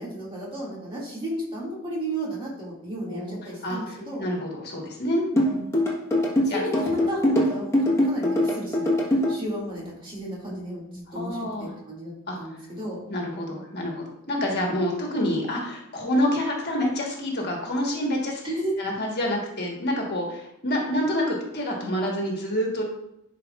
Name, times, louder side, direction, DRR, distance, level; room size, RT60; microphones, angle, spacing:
voice 1, 0.0-4.3 5.3-5.7 6.5-12.1 12.4-13.0 14.5-14.8 18.4-18.7, right 1 dB, 25° right, -6 dB, 2.2 m, -33 dB
voice 2, 3.1-5.2 6.4-6.6 11.1-11.7 12.3-12.4 13.1-18.4 18.8-22.8, left 1 dB, 45° left, -1 dB, 1.3 m, -27 dB
sound 1, 5.4-9.3, left 1 dB, 10° left, 1.2 m, -22 dB
11.0 x 4.6 x 2.4 m, 0.82 s
head